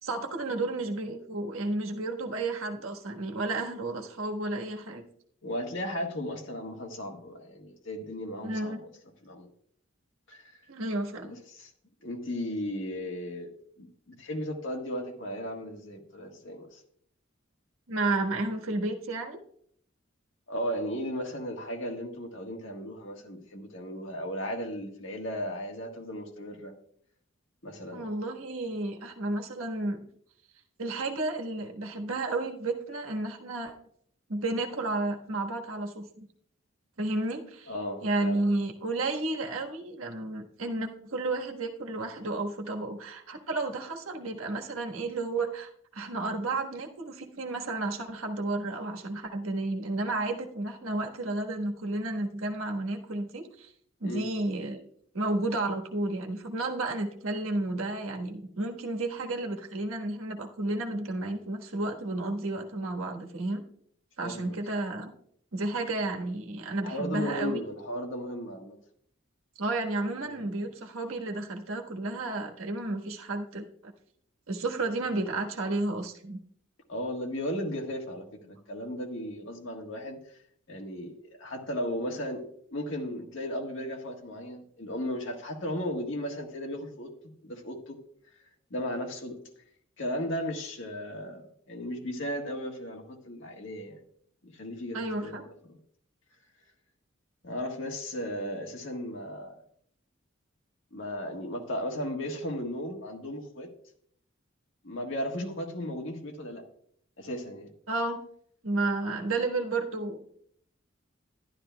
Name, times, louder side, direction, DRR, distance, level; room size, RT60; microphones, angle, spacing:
voice 1, 0.0-5.0 8.4-8.8 10.7-11.4 17.9-19.4 27.9-30.0 30.8-33.7 34.3-36.3 37.0-37.7 38.0-53.7 54.0-54.8 55.1-63.6 64.2-65.1 65.5-67.6 69.6-73.9 74.5-76.4 94.9-95.4 107.9-108.2 108.6-110.3, right 2 dB, 90° right, 3 dB, 1.4 m, -32 dB
voice 2, 5.4-8.7 9.2-9.5 10.3-10.6 11.2-11.7 12.0-13.5 13.8-16.8 20.5-26.7 27.6-28.0 37.7-38.4 54.0-54.3 64.2-64.6 66.8-68.8 70.2-70.7 76.9-80.2 80.7-88.0 88.7-89.4 90.0-94.0 94.4-95.8 97.4-99.6 100.9-103.7 104.8-106.6 107.2-107.7, equal, 70° left, 3 dB, 1.5 m, -36 dB
11.5 x 11.5 x 2.2 m, 0.65 s
head